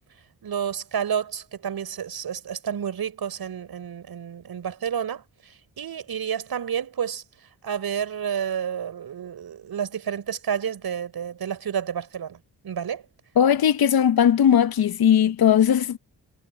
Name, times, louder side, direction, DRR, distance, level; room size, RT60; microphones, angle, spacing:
voice 1, 0.4-7.2 7.6-13.0, right 8 dB, 65° right, 5.5 m, -30 dB
voice 2, 13.4-16.0, left 9 dB, 65° left, 1.2 m, -18 dB
supercardioid pair, 45°, 39 cm